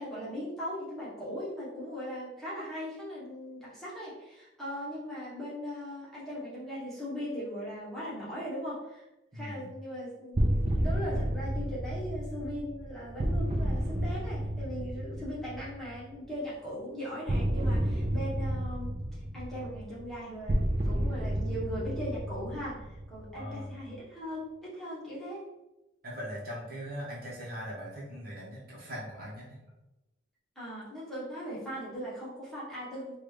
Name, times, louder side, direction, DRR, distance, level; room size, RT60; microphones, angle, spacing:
voice 1, 0.0-9.0 9.3-18.9 19.3-25.4 30.5-33.2, equal, ahead, -10 dB, 1.2 m, -39 dB
voice 2, 9.3-9.8 23.3-23.8 26.0-29.6, equal, 50° right, -6 dB, 1.0 m, -40 dB
sound 1, 10.3-16.1 17.3-23.5, right 1 dB, 30° right, 0.4 m, -31 dB
3.8 x 2.3 x 3.2 m, 0.96 s
head